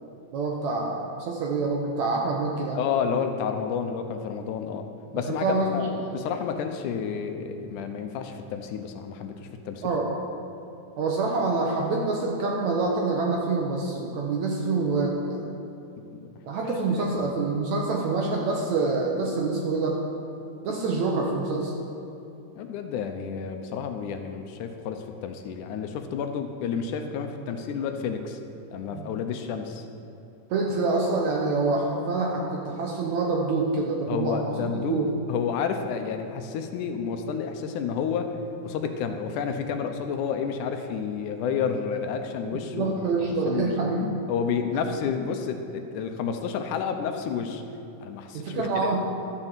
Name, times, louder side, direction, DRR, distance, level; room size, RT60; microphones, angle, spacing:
voice 1, 0.3-2.8 5.3-5.9 9.8-10.1 11.0-15.6 16.5-20.0 20.6-21.7 28.9-29.1 30.5-35.1 42.5-44.2 48.3-49.0, right 3 dB, 65° right, 0 dB, 2.0 m, -26 dB
voice 2, 2.7-4.9 5.1-9.4 9.7-9.9 16.1-16.3 16.6-17.1 22.6-28.4 28.7-29.9 34.1-38.4 38.6-42.9 43.4-47.6 48.0-48.9, left 6 dB, 75° left, 6 dB, 2.0 m, -30 dB
12.5 x 6.6 x 7.3 m, 2.9 s
omnidirectional pair, 3.9 m